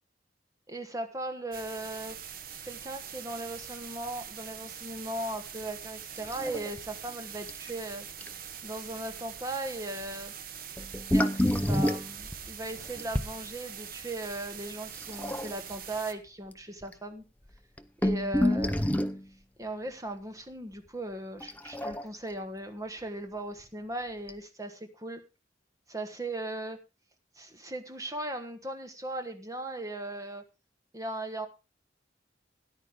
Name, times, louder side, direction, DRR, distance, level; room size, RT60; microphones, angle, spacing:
voice 1, 0.7-2.2 2.6-8.1 8.6-10.3 11.1-17.2 18.0-18.8 19.6-25.2 25.9-26.8 27.3-30.4 30.9-31.5, right 1 dB, 20° right, 7 dB, 1.4 m, -38 dB
sound 1, 1.5-16.1, right 8 dB, 50° right, 0.9 m, -43 dB
sound 2, 6.2-6.8 7.1-7.2 7.5-7.7 8.2-8.3 10.8-13.4 15.0-15.7 16.5-16.6 16.8-16.9 17.5-19.2 21.4-22.3 23.6-23.7 24.3-24.4, left 1 dB, 10° left, 0.6 m, -28 dB
13.0 x 10.5 x 3.7 m, 0.29 s
head